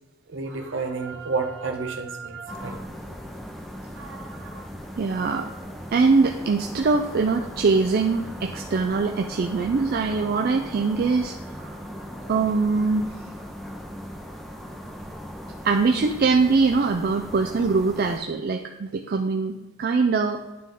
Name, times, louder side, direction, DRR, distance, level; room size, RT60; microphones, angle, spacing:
voice 1, 0.3-2.8 4.0-4.7, right 4 dB, 65° right, 4 dB, 0.8 m, -31 dB
sound 1, 2.5-18.2, equal, ahead, 0.6 m, -38 dB
voice 2, 5.0-5.5 5.9-11.8 12.3-13.1 15.6-20.4, right 4 dB, 45° right, 4 dB, 0.3 m, -22 dB
9.4 x 3.4 x 3.8 m, 1.1 s
head